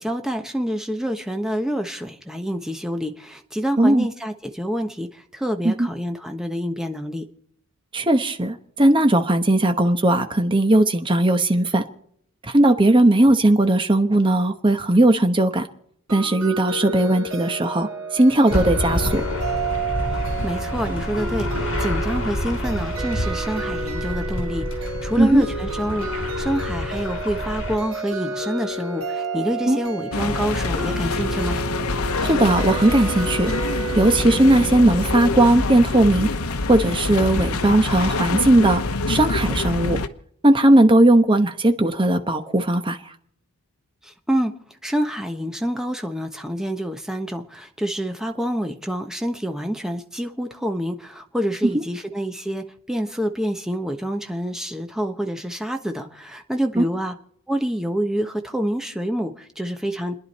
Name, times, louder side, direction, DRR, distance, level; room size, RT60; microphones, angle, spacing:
voice 1, 0.0-7.3 20.4-31.6 44.0-44.5 44.8-57.1 57.5-60.2, equal, ahead, 5 dB, 1.1 m, -27 dB
voice 2, 3.8-4.1 5.6-5.9 7.9-11.8 12.4-15.7 16.1-19.2 25.2-25.4 29.7-29.8 32.2-33.5 34.0-36.3 36.7-38.8 39.1-40.0 40.4-43.0 56.8-56.9, right 1 dB, 25° right, 7 dB, 1.1 m, -17 dB
sound 1, 16.1-35.3, right 2 dB, 70° right, 2.6 m, -31 dB
sound 2, 18.5-27.8, left 1 dB, 60° left, 4.9 m, -28 dB
sound 3, 30.1-40.1, left 3 dB, 85° left, 1.0 m, -25 dB
29.5 x 10.5 x 4.2 m, 0.72 s
head